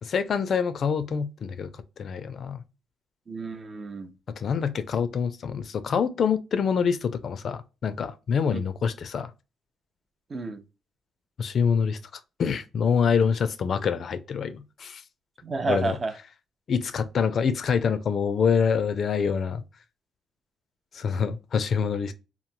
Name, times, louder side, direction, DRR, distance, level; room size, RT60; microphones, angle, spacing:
voice 1, 0.0-1.7 2.0-2.6 4.4-9.3 11.4-12.0 12.4-15.0 15.7-16.0 16.7-19.6 20.9-22.1, left 6 dB, 55° left, 0.4 m, -26 dB
voice 2, 3.3-4.1 8.5-8.6 10.3-10.6 15.4-16.2, right 3 dB, 40° right, 0.5 m, -30 dB
3.1 x 2.0 x 2.6 m
cardioid pair, 90°, 0 cm